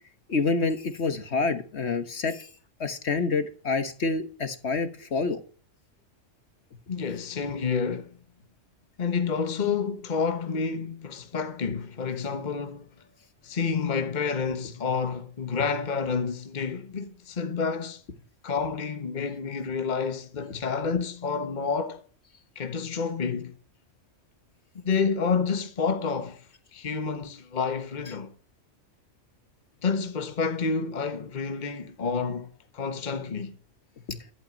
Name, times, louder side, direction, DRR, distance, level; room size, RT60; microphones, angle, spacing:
voice 1, 0.3-2.5 2.8-5.4 34.1-34.2, left 4 dB, 60° left, 1.6 m, -27 dB
voice 2, 6.9-8.2 9.0-12.9 13.4-18.0 18.4-22.0 22.5-23.5 24.8-26.5 26.7-28.3 29.8-32.5 32.7-33.6, left 5 dB, 40° left, 1.3 m, -29 dB
12.0 x 11.0 x 5.2 m
omnidirectional pair, 1.3 m